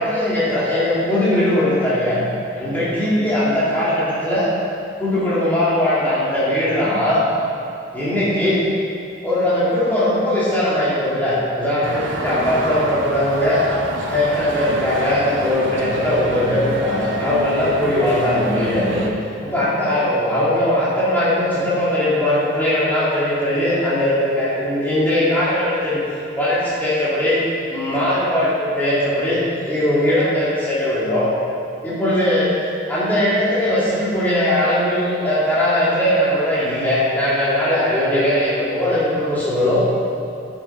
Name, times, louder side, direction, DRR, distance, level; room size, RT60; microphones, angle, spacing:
voice 1, 0.0-2.2 2.5-4.5 5.0-7.2 7.9-8.7 9.2-13.7 14.1-19.0 19.4-26.0 26.3-27.4 27.7-31.3 31.8-32.5 32.9-39.8, left 1 dB, 10° left, -11 dB, 2.9 m, -19 dB
sound 1, 11.8-19.1, right 2 dB, 85° right, 1.1 m, -28 dB
11.0 x 7.3 x 5.4 m, 2.5 s
head